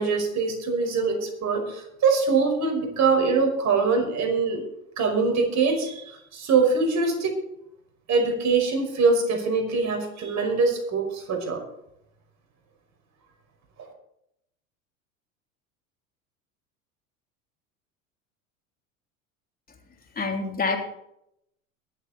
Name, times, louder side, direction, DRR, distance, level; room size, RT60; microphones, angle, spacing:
voice 1, 0.0-4.6 5.0-6.0 6.3-7.3 8.1-11.6, right 4 dB, 40° right, 3 dB, 5.4 m, -23 dB
voice 2, 20.1-20.8, left 4 dB, 20° left, 1 dB, 3.4 m, -26 dB
23.0 x 8.1 x 4.3 m, 0.78 s
hypercardioid pair, 80°, 41 cm